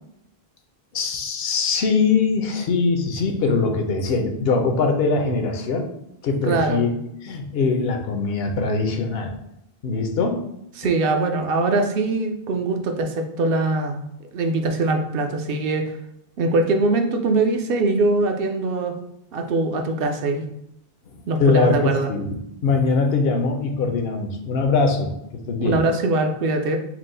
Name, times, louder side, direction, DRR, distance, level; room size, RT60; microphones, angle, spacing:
voice 1, 0.9-5.9 6.2-6.9 7.2-9.3 9.8-10.5 21.4-22.3 22.6-25.8, left 4 dB, 75° left, 4 dB, 0.8 m, -22 dB
voice 2, 6.4-6.8 10.8-14.0 14.3-15.8 16.4-18.9 19.3-20.4 21.3-22.1 25.6-26.8, right 2 dB, 70° right, 4 dB, 0.7 m, -22 dB
4.5 x 2.0 x 3.7 m, 0.78 s
omnidirectional pair, 1.0 m